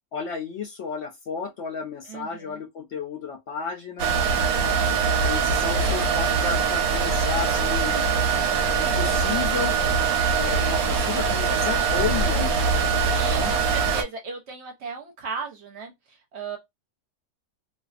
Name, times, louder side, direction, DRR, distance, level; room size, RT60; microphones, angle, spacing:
voice 1, 0.1-4.1 5.3-8.0 8.8-9.7 10.4-12.5 13.3-13.5, left 6 dB, 65° left, 0.7 m, -32 dB
voice 2, 2.1-2.6 5.8-6.1 13.0-16.6, right 5 dB, 60° right, 0.8 m, -36 dB
sound 1, 4.0-14.0, right 5 dB, 90° right, 1.0 m, -23 dB
2.5 x 2.3 x 2.3 m
omnidirectional pair, 1.5 m